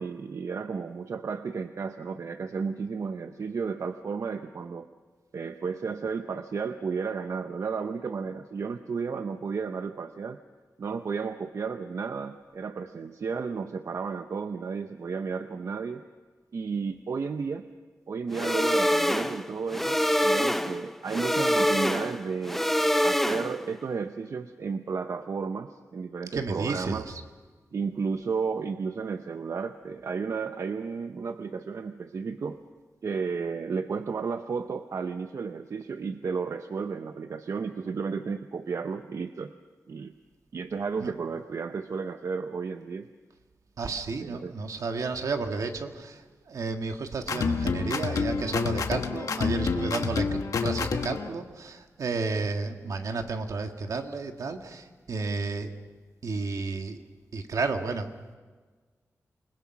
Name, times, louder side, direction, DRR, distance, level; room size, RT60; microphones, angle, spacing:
voice 1, 0.0-4.9 5.3-10.4 10.8-16.0 16.5-17.7 18.1-22.6 23.0-27.0 27.7-32.6 33.0-39.5 39.9-40.1 40.5-43.1 44.2-44.5, right 5 dB, 65° right, 8 dB, 0.8 m, -33 dB
sound 1, 18.3-23.7, equal, 5° left, 0.7 m, -25 dB
voice 2, 26.3-27.2 41.0-41.1 43.8-55.7 56.2-57.0 57.3-58.4, right 4 dB, 80° right, 5 dB, 1.8 m, -32 dB
sound 2, 47.2-51.3, left 5 dB, 85° left, 1.4 m, -28 dB
28.0 x 20.5 x 6.0 m, 1.4 s
wide cardioid pair, 135°, 6 cm